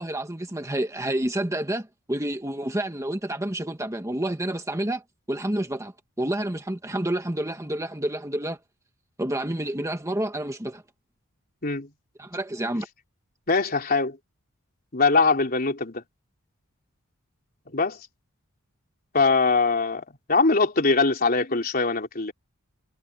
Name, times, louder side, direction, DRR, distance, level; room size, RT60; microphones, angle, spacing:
voice 1, 0.0-5.9 6.2-8.6 9.2-10.8 12.2-12.9, right 1 dB, 15° right, 1.6 m, -29 dB
voice 2, 13.5-14.2 14.9-16.0 17.7-18.0 19.1-22.3, left 4 dB, 45° left, 3.7 m, -22 dB
head